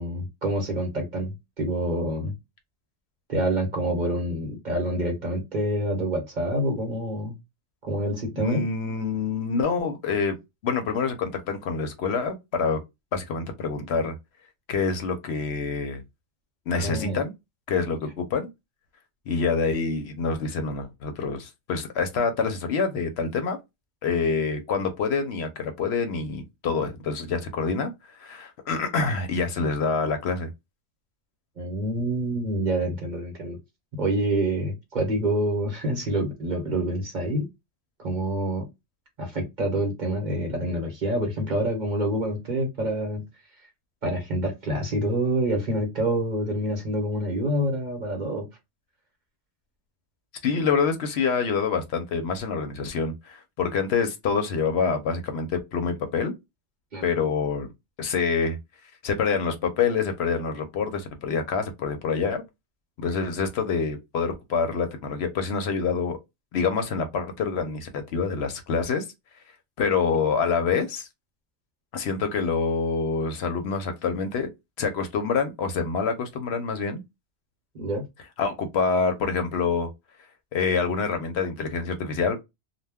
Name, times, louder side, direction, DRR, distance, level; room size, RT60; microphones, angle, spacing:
voice 1, 0.0-2.3 3.3-7.3 7.8-8.7 16.8-17.2 31.6-33.6 34.0-37.5 38.0-38.7 39.2-43.2 44.0-48.4 56.9-57.0 77.7-78.0, right 1 dB, 45° right, 1.0 m, -27 dB
voice 2, 8.4-10.4 10.6-12.8 13.1-14.2 14.7-16.0 16.7-17.3 17.7-18.5 19.3-23.6 24.0-27.9 28.2-30.5 50.4-56.3 57.0-57.7 58.0-58.6 59.0-62.4 63.0-66.2 66.5-69.0 69.8-71.1 71.9-74.5 74.8-77.0 78.4-79.9 80.5-82.4, left 5 dB, 70° left, 0.8 m, -26 dB
2.2 x 2.2 x 3.4 m
omnidirectional pair, 1.2 m